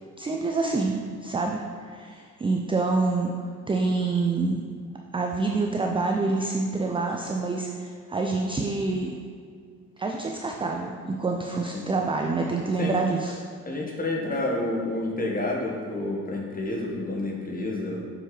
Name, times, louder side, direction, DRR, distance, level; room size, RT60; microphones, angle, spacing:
voice 1, 0.2-1.6 1.9-3.3 3.7-4.6 5.1-9.2 10.0-13.4, right 3 dB, 10° right, 2 dB, 0.5 m, -27 dB
voice 2, 13.6-18.0, left 2 dB, 20° left, -1 dB, 1.5 m, -29 dB
7.1 x 4.7 x 3.4 m, 2.1 s
figure-of-eight pair, 45°, 44 cm